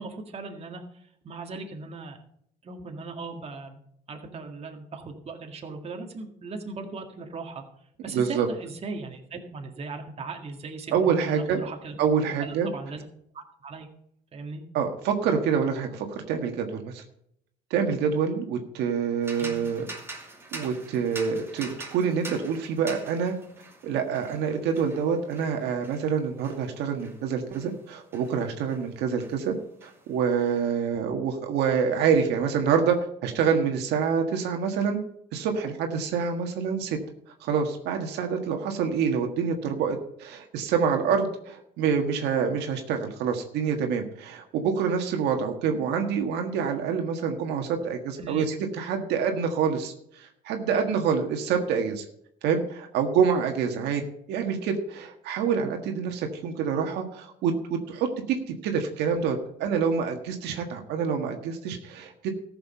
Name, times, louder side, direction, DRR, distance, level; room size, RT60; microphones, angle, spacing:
voice 1, 0.0-2.2 2.6-3.8 4.1-7.6 8.0-12.0 12.4-13.0 13.3-13.9 14.3-14.6 19.4-19.5 48.2-48.5, right 3 dB, 35° right, 3 dB, 1.9 m, -38 dB
voice 2, 8.1-8.5 10.9-11.6 12.0-12.7 14.7-17.0 17.7-19.8 20.5-23.3 23.8-29.5 29.8-33.0 33.2-35.0 35.3-37.0 37.4-52.0 52.4-54.0 54.3-62.3, right 6 dB, 85° right, 4 dB, 1.6 m, -26 dB
sound 1, 19.2-28.9 29.2-30.5, right 2 dB, 15° right, 2.6 m, -44 dB
14.0 x 6.8 x 5.5 m, 0.72 s
cardioid pair, 110°, 17 cm